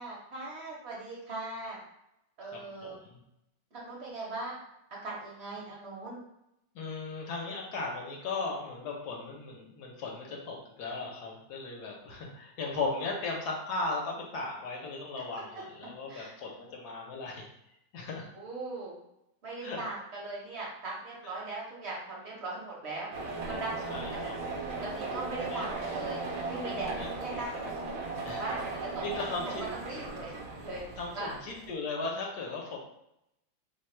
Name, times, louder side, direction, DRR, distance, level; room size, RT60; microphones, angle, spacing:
voice 1, 0.0-1.8 2.4-3.0 3.7-4.6 5.0-6.2 15.5-15.6 16.1-16.3 18.3-19.0 19.4-23.1 23.4-24.3 24.8-27.9 28.4-29.5 29.8-30.3 30.6-30.8 31.1-31.3, right 2 dB, 45° right, -4 dB, 0.9 m, -39 dB
voice 2, 2.5-3.2 6.7-17.5 17.9-18.3 19.6-19.8 23.9-24.4 25.5-25.6 27.0-27.1 28.2-28.4 29.0-29.6 31.0-32.8, left 3 dB, 65° left, 0 dB, 1.2 m, -37 dB
sound 1, 23.1-31.7, right 3 dB, 65° right, 1.2 m, -37 dB
3.2 x 2.2 x 4.3 m, 0.83 s
omnidirectional pair, 2.0 m